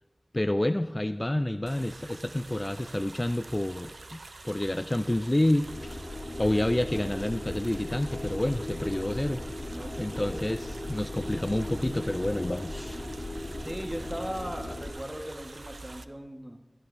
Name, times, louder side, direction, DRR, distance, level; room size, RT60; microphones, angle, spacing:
voice 1, 0.3-4.2 4.4-6.0 6.4-9.4 10.0-13.0, left 1 dB, 30° left, 9 dB, 0.4 m, -29 dB
sound 1, 1.7-16.1, right 2 dB, 90° right, 0.4 m, -46 dB
sound 2, 5.5-14.9, left 1 dB, 85° left, 1.9 m, -37 dB
voice 2, 9.7-10.4 13.6-16.6, equal, 20° right, 3 dB, 1.3 m, -38 dB
23.0 x 8.2 x 2.6 m, 1.3 s
wide cardioid pair, 60°, 0 cm